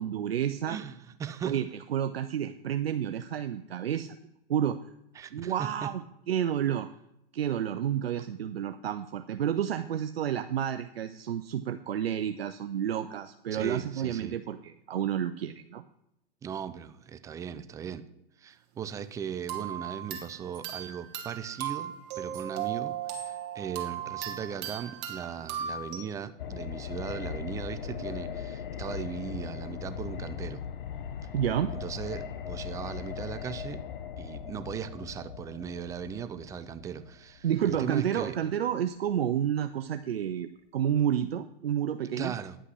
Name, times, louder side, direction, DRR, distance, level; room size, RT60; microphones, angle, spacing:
voice 1, 0.0-0.8 1.4-1.7 1.9-4.2 4.5-4.8 5.3-6.9 7.3-15.8 31.3-31.7 37.4-42.3, right 9 dB, 80° right, 9 dB, 0.6 m, -30 dB
voice 2, 0.7-1.6 5.2-5.9 13.5-14.4 16.4-18.0 18.4-30.6 31.7-33.8 34.2-38.4 42.2-42.6, right 8 dB, 10° right, 12 dB, 0.4 m, -38 dB
sound 1, 19.5-26.0, right 9 dB, 35° right, 1.7 m, -37 dB
sound 2, 26.4-38.2 38.5-38.6, left 8 dB, 65° left, 0.9 m, -39 dB
9.9 x 5.7 x 6.1 m, 0.79 s
hypercardioid pair, 115°, 30 cm